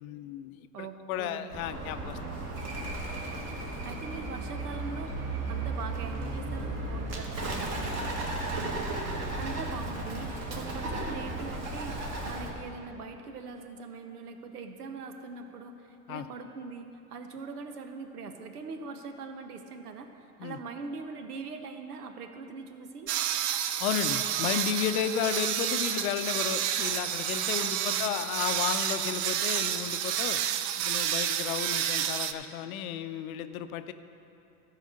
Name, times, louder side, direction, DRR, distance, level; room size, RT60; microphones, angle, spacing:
voice 1, 0.0-2.8 16.1-16.3 20.4-20.6 23.8-30.4 30.8-33.9, left 10 dB, 65° left, 11 dB, 0.7 m, -33 dB
voice 2, 0.7-1.6 3.8-16.8 17.1-23.1 27.6-28.2, right 4 dB, 90° right, 7 dB, 1.0 m, -42 dB
Bird, 1.5-12.5, right 2 dB, 35° right, 1.7 m, -35 dB
sound 1, 23.1-32.3, right 10 dB, 50° right, 0.6 m, -30 dB
13.0 x 4.9 x 6.4 m, 2.8 s
hypercardioid pair, 105°, 45 cm